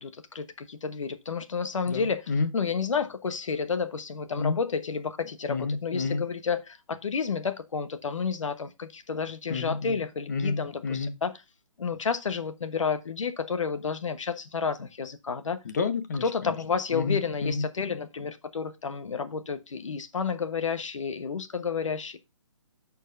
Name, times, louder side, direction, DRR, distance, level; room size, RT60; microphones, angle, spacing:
voice 1, 0.0-2.2 2.5-11.3 11.8-15.6 16.2-22.2, left 5 dB, 70° left, 1.2 m, -31 dB
voice 2, 1.9-2.5 4.4-4.6 5.5-6.2 9.5-10.0 10.3-11.1 15.6-16.6 16.9-17.7, left 4 dB, 35° left, 0.9 m, -30 dB
13.5 x 4.6 x 2.6 m
hypercardioid pair, 175°, 17 cm